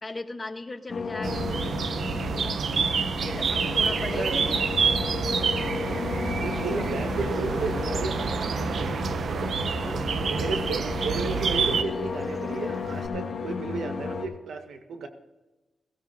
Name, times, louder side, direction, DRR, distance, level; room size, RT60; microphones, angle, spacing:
voice 1, 0.0-2.6 3.2-4.7 6.7-6.9 9.8-10.1, left 2 dB, 25° left, 7 dB, 1.1 m, -38 dB
sound 1, 0.9-14.3, left 5 dB, 55° left, 2.0 m, -33 dB
sound 2, 1.2-11.8, right 6 dB, 65° right, 0.6 m, -28 dB
voice 2, 4.1-4.4 6.3-9.0 10.3-15.1, right 4 dB, 85° right, 6 dB, 1.5 m, -34 dB
Bird vocalization bird call bird song, 4.4-13.1, right 1 dB, 30° right, 1.4 m, -44 dB
16.5 x 16.0 x 2.8 m, 1.1 s
cardioid pair, 95°, 0 cm